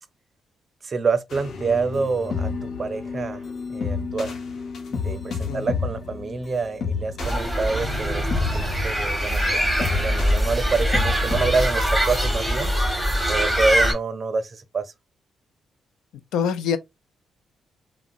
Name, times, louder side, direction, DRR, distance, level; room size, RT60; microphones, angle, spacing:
voice 1, 0.8-3.4 3.7-4.4 4.9-8.3 8.5-9.4 9.8-12.7 13.3-14.9, right 4 dB, 45° right, 0.5 m, -27 dB
sound 1, 1.3-11.5, left 5 dB, 65° left, 0.7 m, -31 dB
sound 2, 7.2-13.9, equal, 5° left, 1.2 m, -23 dB
sound 3, 7.7-9.7, left 1 dB, 40° left, 2.0 m, -38 dB
voice 2, 16.3-16.8, left 7 dB, 85° left, 0.3 m, -24 dB
3.5 x 2.0 x 2.3 m
supercardioid pair, 65°, 0 cm